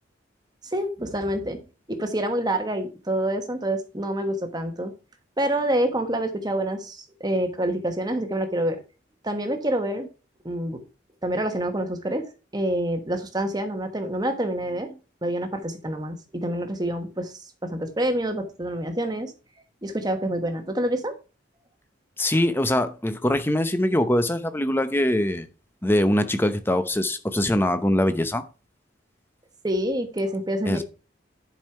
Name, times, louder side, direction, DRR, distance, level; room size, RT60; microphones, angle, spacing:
voice 1, 0.7-1.6 1.9-4.9 5.4-8.8 9.2-10.1 10.4-10.8 11.2-12.3 12.5-17.3 17.6-19.3 19.8-21.1 29.6-30.8, right 1 dB, 20° right, 1.2 m, -27 dB
voice 2, 22.2-25.5 25.8-28.4 30.7-30.8, left 1 dB, 10° left, 0.7 m, -23 dB
10.5 x 5.5 x 4.5 m
head